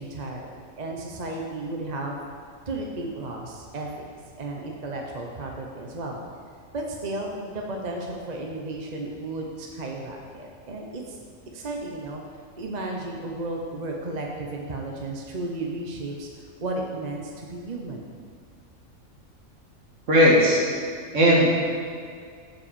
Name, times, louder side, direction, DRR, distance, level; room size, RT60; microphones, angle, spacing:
voice 1, 0.0-2.2 2.7-4.1 4.4-6.2 6.7-11.2 11.5-12.2 12.6-16.3 16.6-18.1, right 2 dB, 35° right, 0 dB, 0.8 m, -33 dB
voice 2, 20.1-20.7 21.1-21.5, equal, 65° right, -3 dB, 1.8 m, -17 dB
7.2 x 5.4 x 6.8 m, 2.2 s
omnidirectional pair, 1.4 m